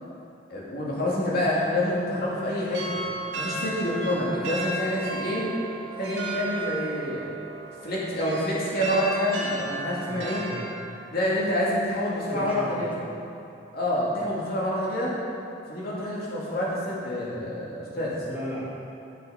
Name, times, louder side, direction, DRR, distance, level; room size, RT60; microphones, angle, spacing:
voice 1, 0.5-3.0 3.4-5.5 6.0-7.3 7.8-10.4 11.1-12.9 13.7-15.1 15.7-18.2, left 1 dB, 60° left, -6 dB, 2.6 m, -27 dB
sound 1, 2.7-10.8, right 2 dB, 80° right, 1.8 m, -34 dB
voice 2, 10.1-10.7 12.3-12.9 18.3-18.7, equal, 10° right, -8 dB, 2.4 m, -36 dB
10.0 x 7.0 x 5.8 m, 2.6 s
head